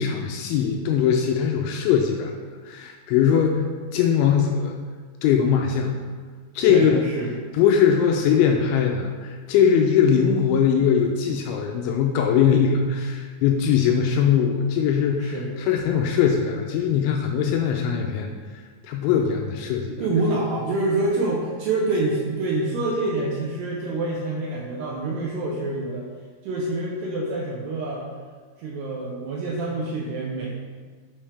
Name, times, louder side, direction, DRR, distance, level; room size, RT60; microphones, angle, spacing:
voice 1, 0.0-2.3 2.7-3.6 3.9-4.7 5.2-5.9 6.6-7.0 7.6-15.3 15.7-18.3 18.8-20.0, left 7 dB, 85° left, 2 dB, 2.8 m, -21 dB
voice 2, 6.7-7.3 15.2-15.5 20.0-26.1 26.4-28.1 28.6-30.5, right 2 dB, 75° right, -3 dB, 2.5 m, -26 dB
8.7 x 7.1 x 3.4 m, 1.6 s
omnidirectional pair, 5.8 m